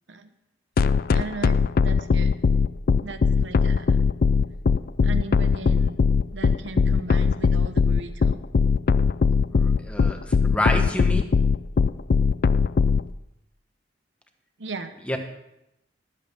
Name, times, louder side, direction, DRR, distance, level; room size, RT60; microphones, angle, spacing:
sound 1, 0.8-13.0, left 5 dB, 50° left, 0.4 m, -19 dB
voice 1, 1.1-2.4 3.0-4.0 5.0-6.0 6.3-8.4 14.6-15.0, right 3 dB, 75° right, 9 dB, 1.0 m, -37 dB
voice 2, 9.5-11.3 15.1-15.2, left 1 dB, 5° left, 4 dB, 1.2 m, -28 dB
22.0 x 7.8 x 3.5 m, 0.85 s
head